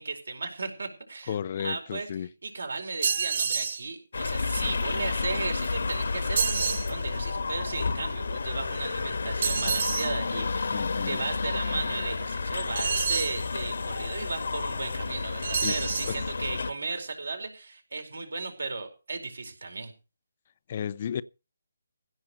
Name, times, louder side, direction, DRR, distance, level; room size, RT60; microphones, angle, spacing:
voice 1, 0.0-19.9, right 3 dB, 70° right, 4.5 m, -35 dB
voice 2, 1.3-2.3 10.7-11.2 15.6-15.7 16.1-16.2 20.7-21.2, left 8 dB, 40° left, 0.6 m, -32 dB
sound 1, 3.0-3.8 6.4-6.9 9.4-10.1 12.8-13.4 15.4-16.2, right 6 dB, 50° right, 0.6 m, -28 dB
sound 2, 4.1-16.7, left 4 dB, 65° left, 1.6 m, -31 dB
16.0 x 6.5 x 6.9 m
figure-of-eight pair, 150°, 0 cm